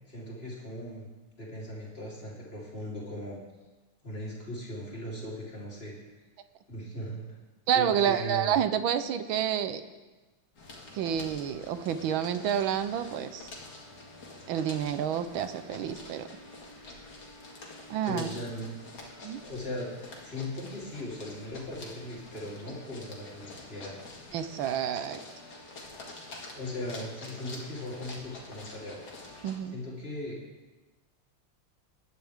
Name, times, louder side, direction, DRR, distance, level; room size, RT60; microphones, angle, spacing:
voice 1, 0.1-1.1 1.4-3.4 4.0-6.0 6.7-7.2 7.7-8.6 18.1-18.7 19.2-19.9 20.2-24.0 26.5-29.0 29.7-30.4, left 1 dB, 25° left, -5 dB, 3.6 m, -38 dB
voice 2, 7.7-9.8 10.9-13.5 14.5-16.3 17.9-18.3 19.2-19.4 24.3-25.2 29.4-29.8, right 9 dB, 70° right, 10 dB, 1.4 m, -29 dB
sound 1, 10.5-29.6, left 2 dB, 50° left, 2.4 m, -47 dB
19.5 x 11.0 x 3.6 m, 1.2 s
omnidirectional pair, 2.4 m